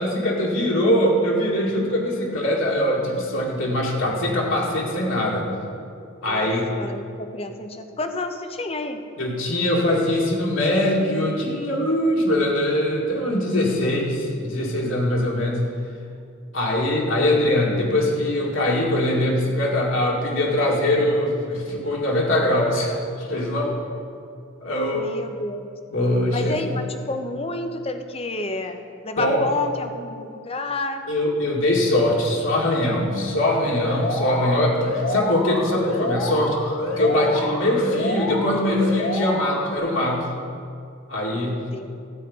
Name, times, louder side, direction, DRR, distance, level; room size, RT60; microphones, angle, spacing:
voice 1, 0.0-5.5 6.2-6.7 9.2-15.7 16.5-23.7 24.6-25.1 25.9-26.6 29.2-29.4 31.1-40.3 41.1-41.6, left 1 dB, 65° left, -3 dB, 2.1 m, -22 dB
voice 2, 6.8-9.0 17.1-17.3 23.6-23.8 24.1-24.2 24.9-25.7 26.3-31.0 34.1-34.7 41.3-41.9, left 2 dB, 25° left, 7 dB, 0.7 m, -30 dB
Alarm, 33.8-39.8, left 1 dB, 85° left, 2.2 m, -28 dB
13.0 x 4.9 x 8.8 m, 2.4 s
head